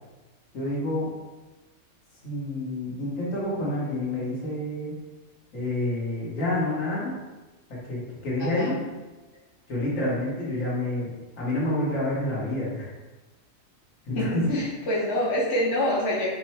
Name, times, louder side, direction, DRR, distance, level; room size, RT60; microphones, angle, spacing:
voice 1, 0.5-1.1 2.2-4.9 5.5-7.2 7.7-8.7 9.7-12.9 14.0-14.6, left 1 dB, 85° left, -6 dB, 1.7 m, -28 dB
voice 2, 8.4-8.8 14.1-16.3, left 1 dB, 60° left, -6 dB, 1.2 m, -26 dB
5.2 x 2.2 x 4.2 m, 1.1 s
omnidirectional pair, 1.3 m